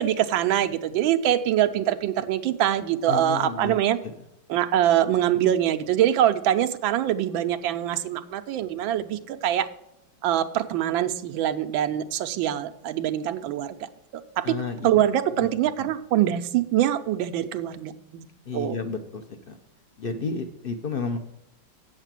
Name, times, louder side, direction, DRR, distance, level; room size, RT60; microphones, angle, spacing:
voice 1, 0.0-4.0 4.5-9.7 10.2-13.8 14.5-14.6 14.8-18.2 18.5-18.8, right 11 dB, 90° right, 8 dB, 1.4 m, -24 dB
voice 2, 3.1-3.8 4.0-4.1 14.4-15.1 15.4-15.5 15.8-15.9 18.5-19.6 20.0-21.2, left 4 dB, 70° left, 7 dB, 0.5 m, -32 dB
8.0 x 7.4 x 7.4 m, 0.84 s
omnidirectional pair, 2.1 m